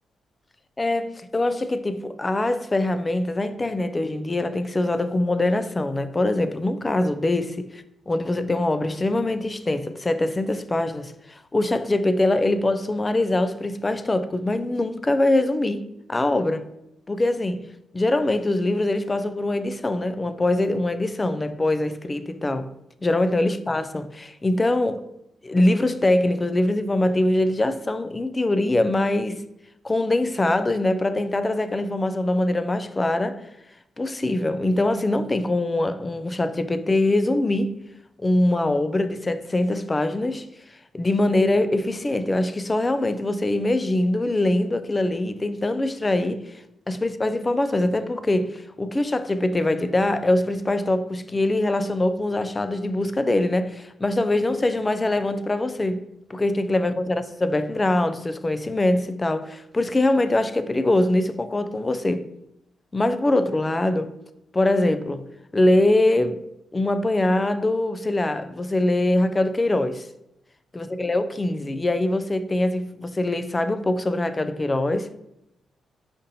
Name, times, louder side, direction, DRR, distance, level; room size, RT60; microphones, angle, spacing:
voice 1, 0.8-16.6 17.1-17.6 17.9-22.7 23.0-25.0 25.4-29.4 29.8-33.4 34.0-37.8 38.2-40.5 40.9-46.5 46.9-56.0 56.3-62.3 62.9-64.1 64.5-65.2 65.5-66.4 66.7-70.1 70.7-75.1, left 2 dB, 25° left, 0.3 m, -23 dB
5.2 x 2.5 x 2.7 m
cardioid pair, 60°, 0 cm